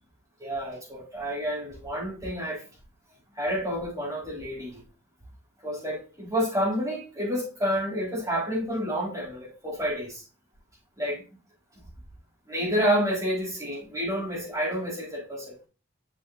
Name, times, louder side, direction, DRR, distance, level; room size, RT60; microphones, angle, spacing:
voice 1, 0.4-2.6 3.4-4.8 5.6-10.2 11.0-11.2 12.5-15.6, equal, 15° right, 3.8 m, -29 dB
7.5 x 6.1 x 2.5 m
head